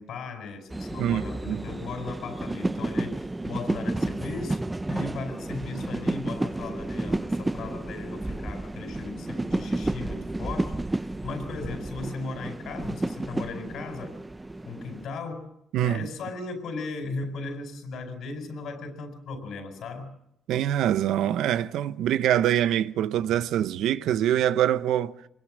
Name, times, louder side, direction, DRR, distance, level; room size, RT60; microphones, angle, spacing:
voice 1, 0.0-3.1 3.4-10.8 11.2-14.1 14.6-15.5 15.8-20.1, left 4 dB, 75° left, 4.8 m, -37 dB
sound 1, 0.7-15.1, right 2 dB, 15° right, 0.8 m, -31 dB
voice 2, 20.5-25.1, right 11 dB, 85° right, 0.8 m, -24 dB
24.0 x 21.5 x 6.3 m
cardioid pair, 90°, 0 cm